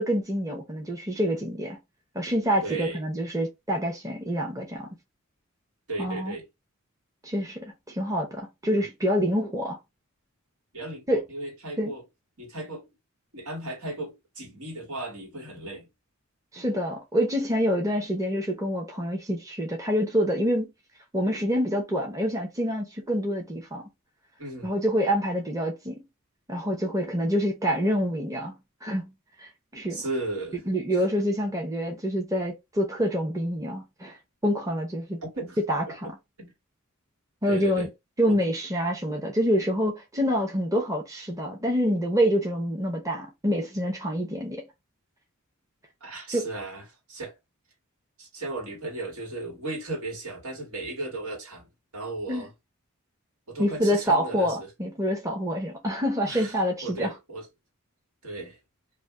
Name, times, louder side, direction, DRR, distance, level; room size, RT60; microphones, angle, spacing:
voice 1, 0.0-1.8 2.1-4.9 6.0-6.4 7.2-9.8 11.1-11.2 11.8-11.9 16.5-20.7 21.1-23.8 24.6-26.0 26.5-28.5 28.8-29.1 29.4-30.0 30.7-34.2 34.4-35.2 35.6-36.1 37.4-37.9 38.2-44.6 46.3-46.5 52.3-52.4 53.6-57.1, equal, 15° right, 0.8 m, -26 dB
voice 2, 2.6-3.0 5.9-6.5 8.7-8.9 10.7-12.0 12.4-12.9 13.3-15.9 24.4-24.7 29.9-30.6 35.2-35.6 36.4-36.5 37.5-37.9 38.3-38.4 46.0-47.3 48.2-51.6 51.9-52.5 53.5-54.7 56.3-57.5 58.2-58.6, right 2 dB, 85° right, 1.8 m, -35 dB
2.6 x 2.5 x 3.6 m
head